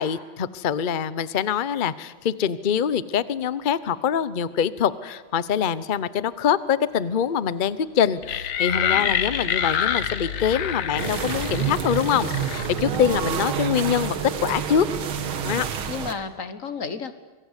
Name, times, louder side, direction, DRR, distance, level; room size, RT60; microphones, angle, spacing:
voice 1, 0.0-14.2 14.4-14.9 15.4-15.7, left 8 dB, 70° left, 16 dB, 0.4 m, -24 dB
sound 1, 2.1-15.9, equal, 25° right, 3.6 m, -50 dB
sound 2, 8.2-13.5, left 9 dB, 85° left, 2.0 m, -27 dB
voice 2, 8.7-9.2 12.9-13.2 15.9-17.1, left 5 dB, 45° left, 12 dB, 1.5 m, -33 dB
sound 3, 11.0-16.1, right 8 dB, 90° right, 2.4 m, -28 dB
26.0 x 23.0 x 8.3 m, 1.2 s
omnidirectional pair, 2.2 m